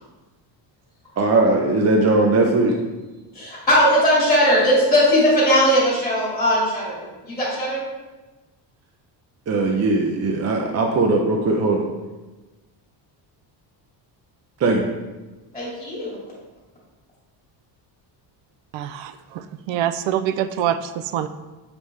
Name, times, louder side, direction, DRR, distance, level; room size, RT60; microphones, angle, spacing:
voice 1, 1.2-2.7 9.5-11.8 14.6-14.8, right 2 dB, 35° right, 1 dB, 0.6 m, -19 dB
voice 2, 3.3-7.9 15.5-16.1, equal, 10° left, -8 dB, 2.3 m, -19 dB
voice 3, 18.7-21.3, right 10 dB, 80° right, 12 dB, 0.6 m, -25 dB
7.3 x 5.1 x 3.2 m, 1.2 s
cardioid pair, 155°, 45 cm